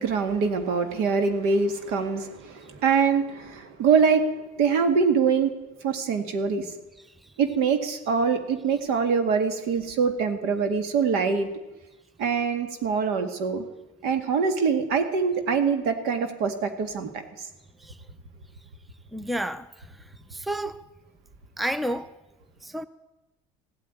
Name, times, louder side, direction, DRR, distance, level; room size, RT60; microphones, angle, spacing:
voice 1, 0.0-4.3 4.6-5.5 5.8-6.7 7.4-11.5 12.2-13.7 14.0-17.2, right 5 dB, 70° right, 2.0 m, -24 dB
voice 2, 19.1-19.7 20.3-20.8 21.6-22.1 22.6-22.9, right 1 dB, ahead, 0.6 m, -30 dB
16.0 x 8.8 x 9.4 m
supercardioid pair, 105°, 17 cm